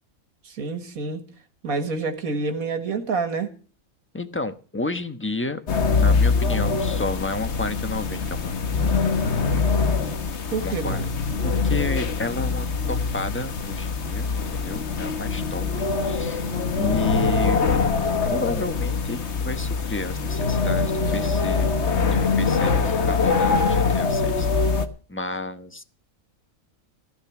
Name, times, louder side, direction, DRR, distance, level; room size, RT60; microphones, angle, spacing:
voice 1, 0.4-1.3 1.6-3.5 10.5-11.2, right 4 dB, 85° right, 2.1 m, -28 dB
voice 2, 4.1-5.6 6.0-8.6 10.6-11.0 11.4-17.6 18.2-21.7 22.0-24.5 25.1-25.8, left 2 dB, 10° left, 1.0 m, -31 dB
sound 1, 5.7-24.9, left 4 dB, 55° left, 1.4 m, -23 dB
15.0 x 10.5 x 6.0 m
omnidirectional pair, 1.5 m